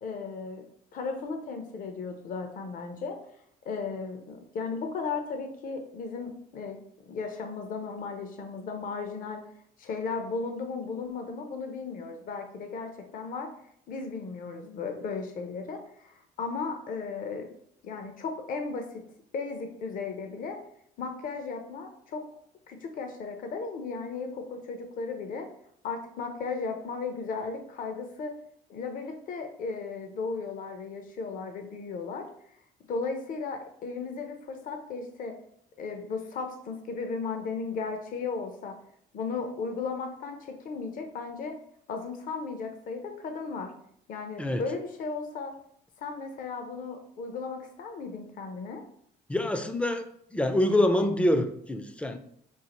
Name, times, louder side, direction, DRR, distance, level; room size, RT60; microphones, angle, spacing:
voice 1, 0.0-0.6 0.9-3.2 3.7-6.8 7.1-9.4 9.8-13.5 13.9-17.5 17.8-19.0 19.3-20.6 21.0-22.2 22.7-25.5 25.8-28.3 28.7-32.3 32.9-35.4 35.8-38.7 39.1-41.5 41.9-43.7 44.1-45.5 46.0-48.8, left 4 dB, 55° left, 5 dB, 0.7 m, -35 dB
voice 2, 49.3-52.2, left 1 dB, 5° left, 8 dB, 0.4 m, -26 dB
5.5 x 2.4 x 2.9 m, 0.69 s
cardioid pair, 110°, 17 cm